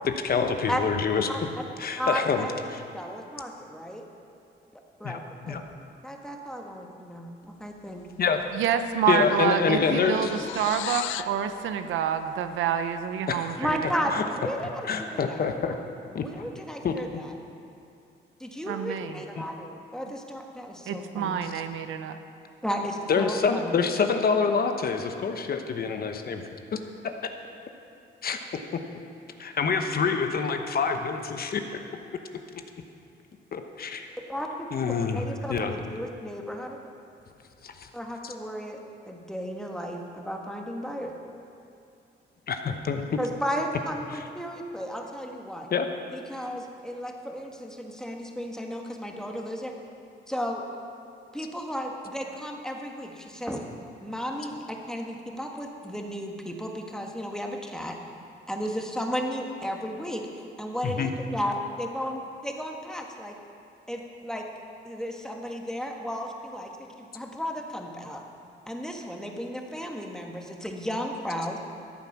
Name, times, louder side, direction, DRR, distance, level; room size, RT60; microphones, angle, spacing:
voice 1, 0.0-1.3 1.8-2.8 5.0-5.2 5.5-5.6 8.2-8.4 9.1-10.3 13.3-13.5 14.1-14.2 14.8-15.7 16.1-16.3 16.8-16.9 19.4-19.5 23.1-26.4 26.7-26.8 27.0-27.1 28.2-28.4 29.4-31.6 33.5-34.1 34.7-35.2 35.5-35.7 37.6-37.9 42.5-43.0 45.7-45.9 60.8-61.1, left 5 dB, 50° left, 6 dB, 1.0 m, -26 dB
voice 2, 2.0-2.6 2.9-4.0 5.0-5.2 5.5-5.6 6.0-8.1 13.6-15.8 16.1-17.3 18.4-21.4 22.6-23.7 34.3-34.7 35.1-36.8 37.9-41.2 43.2-45.7 46.1-49.7 50.3-50.7 51.3-53.6 54.0-58.0 58.5-63.3 63.9-64.4 64.8-68.2 68.7-71.6, equal, 5° left, 1 dB, 1.6 m, -34 dB
sound 1, 8.2-8.4 8.7-11.4, left 14 dB, 80° left, 0.4 m, -37 dB
voice 3, 8.5-14.1 18.7-19.2 20.9-22.2, right 8 dB, 80° right, 9 dB, 0.7 m, -28 dB
13.5 x 8.1 x 6.0 m, 2.5 s
cardioid pair, 90°, 20 cm